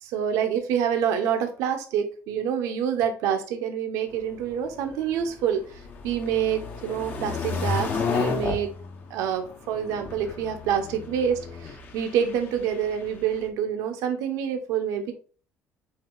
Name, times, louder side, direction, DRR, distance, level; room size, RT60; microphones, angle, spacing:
voice 1, 0.0-8.7 9.1-15.1, right 8 dB, 85° right, 6 dB, 1.2 m, -27 dB
sound 1, 4.1-13.5, left 4 dB, 35° left, 1.1 m, -33 dB
8.4 x 3.0 x 4.0 m, 0.40 s
cardioid pair, 165°, 5 cm